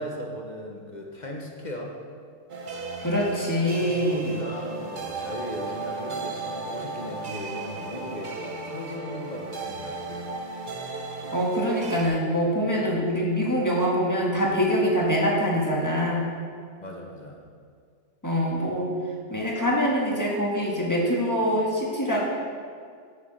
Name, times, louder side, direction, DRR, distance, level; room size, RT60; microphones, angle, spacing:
voice 1, 0.0-2.0 3.7-10.1 16.8-17.4, left 1 dB, 35° left, 0 dB, 0.8 m, -38 dB
sound 1, 2.5-12.1, right 3 dB, 40° right, 0.8 m, -35 dB
voice 2, 3.0-4.4 11.3-16.3 18.2-18.9 19.3-22.2, equal, 15° left, -4 dB, 1.4 m, -24 dB
6.9 x 6.8 x 6.5 m, 2.1 s
omnidirectional pair, 1.6 m